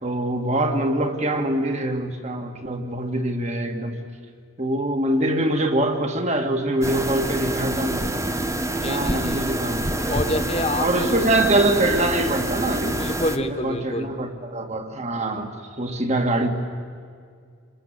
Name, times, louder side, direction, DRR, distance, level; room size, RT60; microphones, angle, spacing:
voice 1, 0.0-4.0 4.6-8.2 8.8-10.2 10.8-13.0 13.4-16.5, right 1 dB, 35° right, 5 dB, 2.4 m, -24 dB
sound 1, 6.8-13.4, right 1 dB, 15° right, 1.0 m, -27 dB
voice 2, 8.8-9.4 10.1-11.1 12.9-14.2, left 1 dB, 30° left, 7 dB, 1.9 m, -27 dB
28.0 x 22.5 x 9.3 m, 2.1 s
head